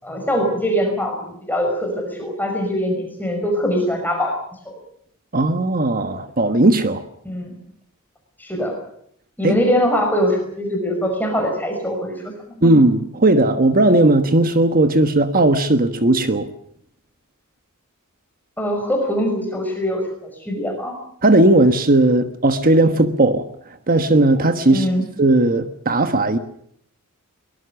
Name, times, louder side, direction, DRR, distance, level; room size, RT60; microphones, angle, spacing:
voice 1, 0.0-4.3 4.7-4.8 7.2-7.6 8.4-8.7 9.4-12.7 18.6-20.9 24.7-25.0, equal, 10° left, 5.6 m, -22 dB
voice 2, 5.3-7.0 9.4-9.6 12.6-16.5 21.2-23.5 23.9-24.9 25.2-26.4, right 2 dB, 40° right, 1.3 m, -16 dB
23.5 x 20.0 x 7.0 m
head